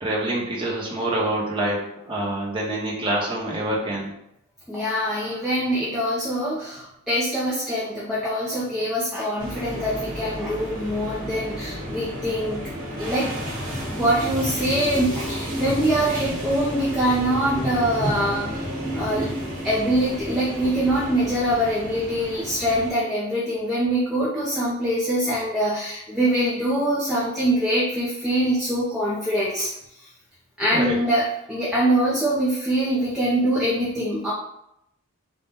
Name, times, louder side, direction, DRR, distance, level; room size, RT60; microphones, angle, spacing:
voice 1, 0.0-4.1 5.2-5.4 30.7-30.9, right 1 dB, 25° right, -5 dB, 1.0 m, -26 dB
voice 2, 4.7-12.6 13.0-13.3 13.9-18.6 18.9-19.3 19.6-29.7 30.0-30.1 30.6-34.3, right 1 dB, ahead, -9 dB, 0.7 m, -24 dB
sound 1, 9.4-22.9, equal, 60° right, 1.4 m, -31 dB
4.1 x 2.4 x 3.6 m, 0.79 s
head